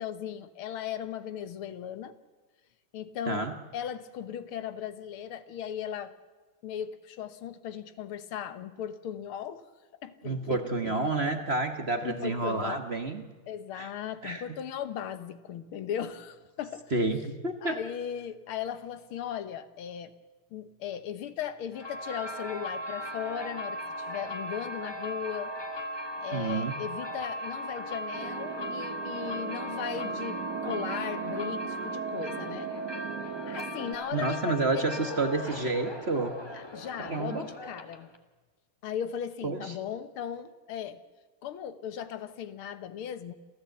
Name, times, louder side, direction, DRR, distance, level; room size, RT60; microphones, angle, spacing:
voice 1, 0.0-2.1 2.9-3.5 3.7-6.1 6.6-9.6 10.0-11.0 11.9-12.8 13.5-16.9 17.6-20.1 20.5-25.5 26.2-32.7 33.4-35.2 36.5-38.1 38.8-41.0 41.4-43.3, left 9 dB, 80° left, 11 dB, 1.9 m, -37 dB
voice 2, 10.2-13.2 13.7-13.9 14.2-14.4 16.9-17.8 26.3-26.7 34.1-36.4 37.0-37.5 39.4-39.8, right 3 dB, 35° right, 6 dB, 1.3 m, -29 dB
sound 1, 21.7-38.2, equal, 15° left, 1.2 m, -37 dB
sound 2, 28.1-33.9, right 8 dB, 55° right, 1.2 m, -39 dB
28.5 x 13.5 x 7.9 m, 1.3 s
omnidirectional pair, 2.3 m